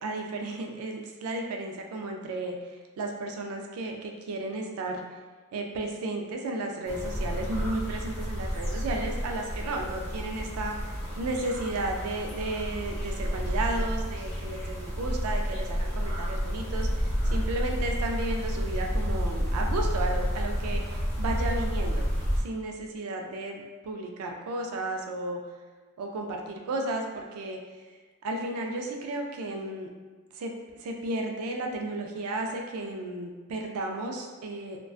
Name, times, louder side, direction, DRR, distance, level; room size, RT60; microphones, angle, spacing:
voice 1, 0.0-5.0 5.5-22.1 22.4-25.4 26.0-27.6 28.2-29.9 30.3-30.5 30.8-34.8, right 2 dB, 85° right, 2 dB, 0.4 m, -33 dB
sound 1, 6.9-22.4, equal, 45° left, 0.7 m, -30 dB
2.4 x 2.2 x 2.3 m, 1.4 s
head